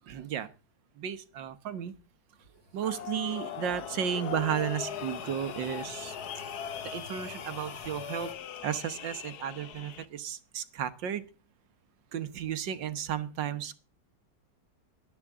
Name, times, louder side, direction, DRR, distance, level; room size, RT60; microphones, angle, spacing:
voice 1, 0.1-0.5 1.0-1.9 2.7-6.2 6.8-8.3 8.6-11.2 12.1-13.8, right 9 dB, 85° right, 12 dB, 1.8 m, -33 dB
sound 1, 2.3-8.3, left 2 dB, 40° left, 3.1 m, -51 dB
sound 2, 2.8-10.1, left 9 dB, 65° left, 1.3 m, -40 dB
18.0 x 12.0 x 3.6 m, 0.33 s
omnidirectional pair, 1.9 m